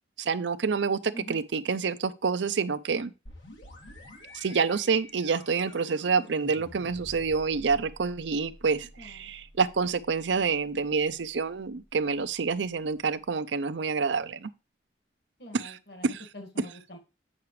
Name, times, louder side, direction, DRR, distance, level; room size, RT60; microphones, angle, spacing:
voice 1, 0.2-3.1 4.3-14.5 15.5-15.8 16.0-16.2, right 5 dB, 80° right, 0.5 m, -28 dB
sound 1, 3.3-12.8, left 1 dB, 85° left, 2.2 m, -50 dB
voice 2, 9.0-9.3 15.4-17.0, equal, 60° left, 1.9 m, -45 dB
8.4 x 5.9 x 3.2 m
head